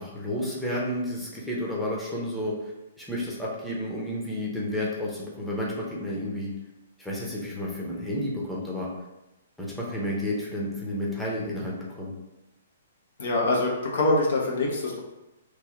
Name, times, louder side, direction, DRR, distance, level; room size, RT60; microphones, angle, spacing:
voice 1, 0.0-2.5 3.0-6.5 7.0-8.9 9.6-12.1, left 1 dB, 5° left, -5 dB, 0.8 m, -31 dB
voice 2, 13.2-15.0, left 2 dB, 65° left, -2 dB, 0.8 m, -24 dB
3.2 x 2.5 x 3.6 m, 0.97 s
figure-of-eight pair, 120°, 0 cm